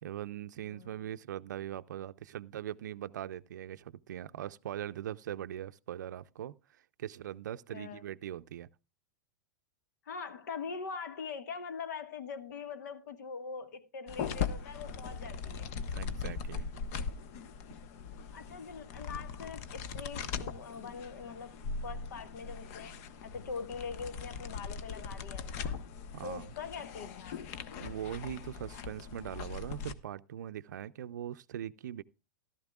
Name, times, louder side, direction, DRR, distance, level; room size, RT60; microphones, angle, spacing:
voice 1, 0.0-8.7 15.9-16.7 26.1-26.5 27.8-32.0, right 11 dB, 85° right, 0.5 m, -41 dB
voice 2, 0.6-1.1 7.7-8.0 10.0-15.7 18.3-25.8 26.2-27.4, left 5 dB, 75° left, 1.5 m, -43 dB
sound 1, 14.1-29.9, left 6 dB, 55° left, 1.0 m, -40 dB
14.5 x 12.5 x 2.3 m
hypercardioid pair, 130°, 9 cm